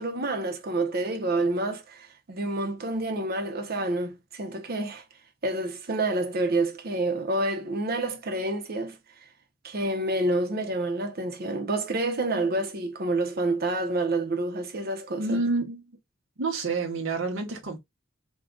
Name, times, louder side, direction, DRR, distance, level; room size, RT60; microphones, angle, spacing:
voice 1, 0.0-5.0 5.4-9.0 9.6-15.4, right 2 dB, 50° right, 0.7 m, -28 dB
voice 2, 15.2-15.8 16.4-17.8, right 3 dB, 80° right, 0.9 m, -28 dB
3.5 x 2.3 x 3.7 m
head